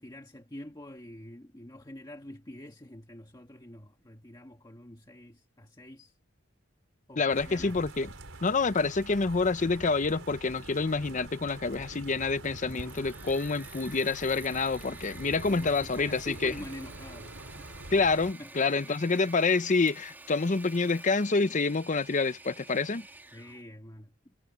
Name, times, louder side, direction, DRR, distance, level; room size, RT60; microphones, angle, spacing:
voice 1, 0.0-6.2 7.1-7.8 15.2-17.7 18.4-19.3 23.3-24.3, left 1 dB, 20° left, 1.5 m, -47 dB
voice 2, 7.2-8.1 8.4-16.6 17.9-23.1, left 4 dB, 40° left, 0.7 m, -27 dB
sound 1, 7.3-18.3, right 2 dB, 80° right, 4.6 m, -46 dB
Engine / Mechanisms, 12.4-23.6, right 2 dB, 10° right, 2.5 m, -49 dB
head